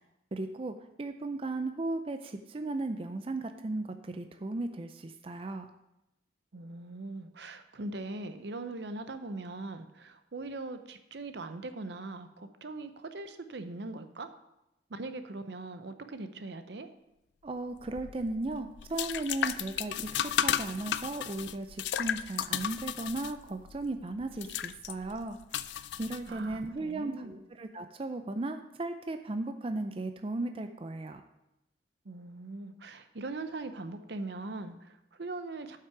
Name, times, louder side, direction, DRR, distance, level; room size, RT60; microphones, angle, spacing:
voice 1, 0.3-5.7 17.4-25.4 26.0-31.2, right 2 dB, 30° right, 7 dB, 0.4 m, -36 dB
voice 2, 6.5-14.3 14.9-16.9 26.3-27.4 32.0-35.8, right 2 dB, 70° right, 10 dB, 0.7 m, -41 dB
sound 1, 17.8-26.7, left 10 dB, 80° left, 0.4 m, -35 dB
8.2 x 5.8 x 5.9 m, 0.89 s
head